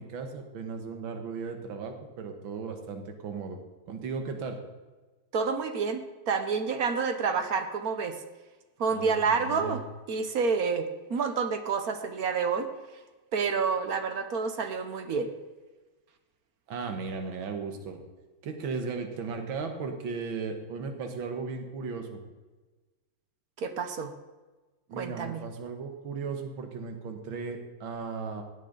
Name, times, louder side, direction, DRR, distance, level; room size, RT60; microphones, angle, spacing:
voice 1, 0.0-3.6 3.9-4.6 8.9-9.8 16.7-18.0 18.4-22.2 24.9-28.4, right 4 dB, 90° right, 5 dB, 2.0 m, -36 dB
voice 2, 5.3-8.2 8.8-9.8 10.1-12.7 13.3-15.3 23.6-24.1 25.0-25.4, right 5 dB, 55° right, 8 dB, 1.2 m, -29 dB
17.0 x 9.1 x 3.9 m, 1.2 s
omnidirectional pair, 2.1 m